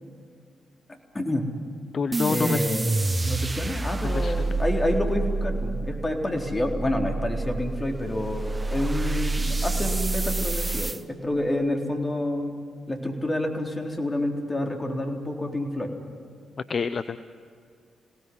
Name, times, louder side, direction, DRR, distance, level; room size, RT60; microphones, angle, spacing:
voice 1, 0.9-1.5 2.3-2.9 3.3-12.5 12.9-15.9, left 1 dB, 25° left, 2 dB, 4.0 m, -28 dB
voice 2, 1.9-2.6 4.2-4.3 16.7-17.2, left 5 dB, 50° left, 12 dB, 0.7 m, -27 dB
sound 1, 2.1-11.0, right 2 dB, 25° right, 1.2 m, -28 dB
27.0 x 18.0 x 9.7 m, 2.1 s
hypercardioid pair, 40°, 0 cm